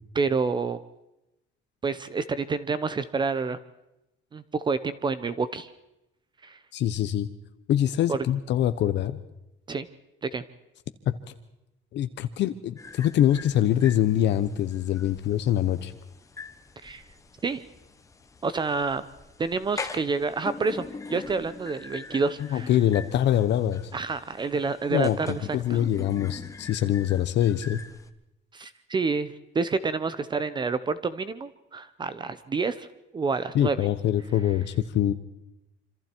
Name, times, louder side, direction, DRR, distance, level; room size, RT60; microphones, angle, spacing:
voice 1, 0.1-0.8 1.8-3.6 4.3-5.7 6.4-6.6 8.1-8.2 9.7-9.9 10.2-10.4 16.8-17.0 17.4-17.6 18.4-19.1 19.4-20.8 21.1-22.7 23.9-25.8 28.5-32.9 33.1-33.9, right 4 dB, 20° right, 13 dB, 0.8 m, -28 dB
voice 2, 6.7-7.3 7.7-9.2 11.9-15.9 22.5-23.9 24.9-27.8 33.5-35.1, left 11 dB, 60° left, 10 dB, 1.1 m, -24 dB
sound 1, 12.8-28.1, left 4 dB, 15° left, 1.2 m, -43 dB
27.0 x 26.0 x 4.6 m, 0.90 s
cardioid pair, 175°, 21 cm